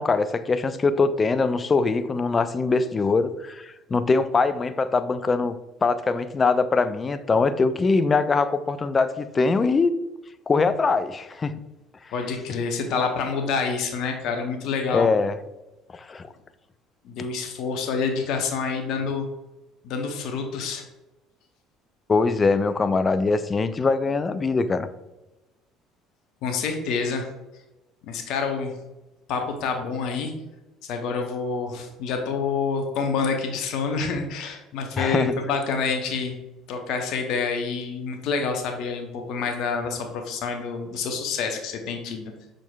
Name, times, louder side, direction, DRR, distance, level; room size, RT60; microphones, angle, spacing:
voice 1, 0.0-10.0 10.5-11.6 14.9-15.4 16.1-16.3 22.1-24.9 35.0-35.3, left 4 dB, 30° left, 12 dB, 0.4 m, -22 dB
voice 2, 12.1-15.1 17.0-19.3 19.8-20.8 26.4-27.3 28.1-28.7 29.3-30.3 30.8-36.4 36.7-42.3, left 5 dB, 60° left, 4 dB, 0.8 m, -27 dB
6.0 x 3.8 x 2.3 m, 1.0 s
figure-of-eight pair, 60°, 0 cm